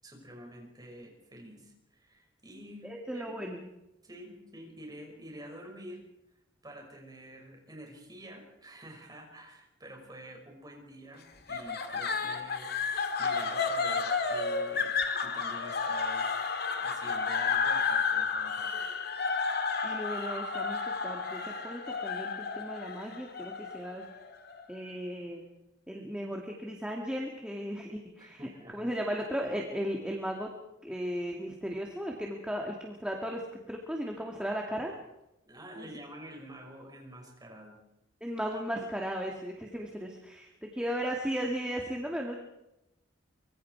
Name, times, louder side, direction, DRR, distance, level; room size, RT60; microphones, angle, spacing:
voice 1, 0.0-2.9 3.1-3.3 4.0-6.0 6.6-16.4 16.8-18.8 28.2-28.9 35.5-37.8, equal, 20° right, 1 dB, 6.1 m, -48 dB
voice 2, 2.8-3.7 19.8-24.1 24.7-25.4 25.9-28.4 28.7-30.5 30.8-34.9 35.8-35.9 38.2-42.4, equal, 5° right, 0 dB, 2.3 m, -36 dB
sound 1, 11.5-24.7, left 5 dB, 55° left, 2.3 m, -32 dB
25.0 x 23.5 x 4.8 m, 0.86 s
head